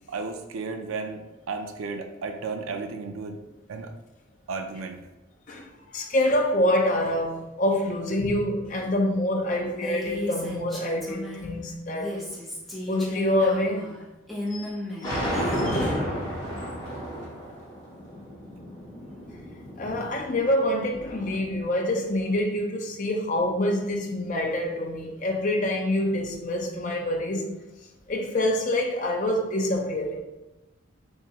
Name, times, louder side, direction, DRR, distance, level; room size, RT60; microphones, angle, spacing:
voice 1, 0.1-1.2 1.5-3.4 3.7-3.9 4.5-5.0, right 4 dB, 80° right, 0.4 m, -33 dB
voice 2, 5.5-12.1 12.9-13.9 14.5-14.7 15.0-16.1 19.8-27.6 28.1-30.2, left 1 dB, 40° left, 0.5 m, -26 dB
Female speech woman speaking, 9.7-11.5 11.9-15.6, left 1 dB, ahead, 0.8 m, -35 dB
sound 1, 15.0-21.2, equal, 20° left, 1.3 m, -32 dB
3.6 x 3.1 x 2.8 m
head